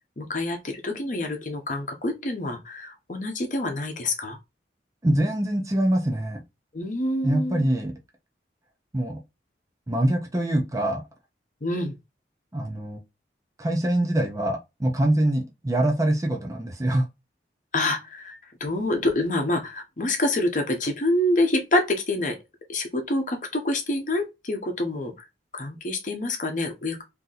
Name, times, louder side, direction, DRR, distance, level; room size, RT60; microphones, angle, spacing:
voice 1, 0.2-4.4 6.7-7.7 11.6-11.9 17.7-22.4 22.7-25.1 25.5-27.0, left 1 dB, 45° left, 0.8 m, -27 dB
voice 2, 5.0-6.4 7.2-7.9 8.9-9.2 9.9-11.0 12.5-13.0 13.6-17.1, right 1 dB, 20° right, 0.5 m, -24 dB
2.7 x 2.6 x 3.9 m
head